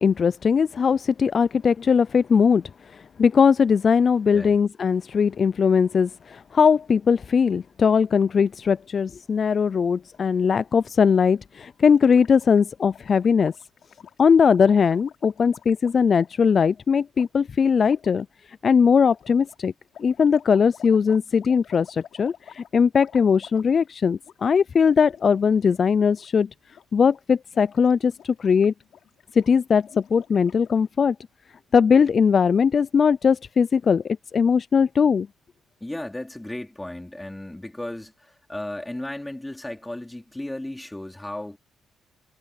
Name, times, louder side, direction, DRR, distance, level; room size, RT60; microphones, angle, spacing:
voice 1, 0.0-13.5 14.2-18.3 18.6-19.7 20.0-26.5 26.9-28.7 29.3-31.2 31.7-35.3, left 6 dB, 45° left, 0.3 m, -20 dB
Gurgling, 11.9-16.5 17.1-17.3 17.8-18.2 19.0-23.9 24.2-24.4 24.7-25.8 26.1-26.3 26.6-27.2 27.5-30.9, left 9 dB, 65° left, 4.9 m, -50 dB
voice 2, 35.8-41.6, left 1 dB, 10° left, 4.0 m, -35 dB
cardioid pair, 90°, 0 cm